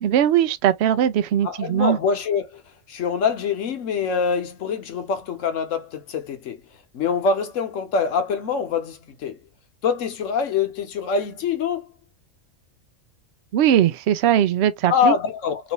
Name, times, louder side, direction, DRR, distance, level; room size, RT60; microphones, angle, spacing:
voice 1, 0.0-2.0 13.5-15.1, right 10 dB, 65° right, 0.7 m, -19 dB
voice 2, 1.4-9.4 9.8-11.9 14.9-15.7, left 6 dB, 65° left, 1.2 m, -25 dB
3.1 x 2.7 x 2.8 m
omnidirectional pair, 1.4 m